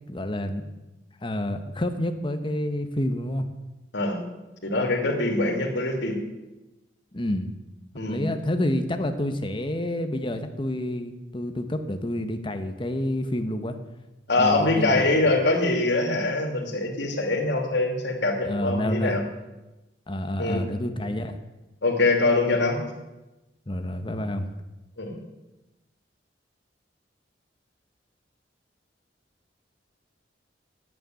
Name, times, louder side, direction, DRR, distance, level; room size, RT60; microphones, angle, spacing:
voice 1, 0.1-0.7 1.2-3.5 7.1-7.5 8.1-13.8 14.4-15.3 18.4-19.2 20.1-21.4 23.7-24.5, left 1 dB, 30° left, 7 dB, 1.0 m, -28 dB
voice 2, 4.6-6.1 7.9-8.2 14.3-19.2 20.4-20.6 21.8-22.8 25.0-25.1, left 2 dB, 75° left, 1 dB, 2.7 m, -23 dB
10.0 x 8.7 x 9.0 m, 1.0 s
head